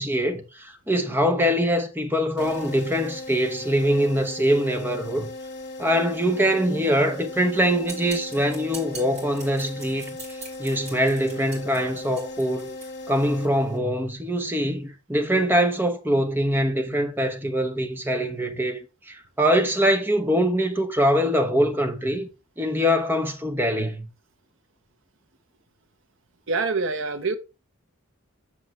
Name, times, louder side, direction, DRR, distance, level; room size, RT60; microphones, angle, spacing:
voice 1, 0.0-5.3 5.8-12.7 13.1-22.3 22.6-24.1, equal, 10° right, 1.0 m, -23 dB
sound 1, 2.4-14.1, left 2 dB, 50° left, 2.2 m, -38 dB
sound 2, 7.9-12.9, right 2 dB, 30° right, 5.2 m, -42 dB
voice 2, 26.5-27.4, right 4 dB, 60° right, 0.9 m, -25 dB
7.9 x 6.6 x 3.1 m
head